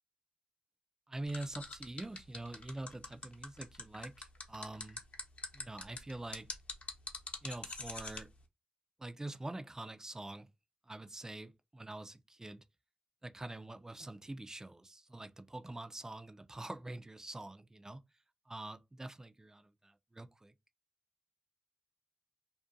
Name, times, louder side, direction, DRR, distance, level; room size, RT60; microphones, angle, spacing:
voice 1, 1.1-5.0 5.5-6.5 7.4-8.3 9.0-10.5 10.9-12.6 13.2-18.0 18.5-20.5, right 2 dB, 20° right, 0.4 m, -45 dB
sound 1, 1.3-8.2, left 3 dB, 50° left, 0.8 m, -43 dB
2.5 x 2.2 x 2.5 m
cardioid pair, 55°, 3 cm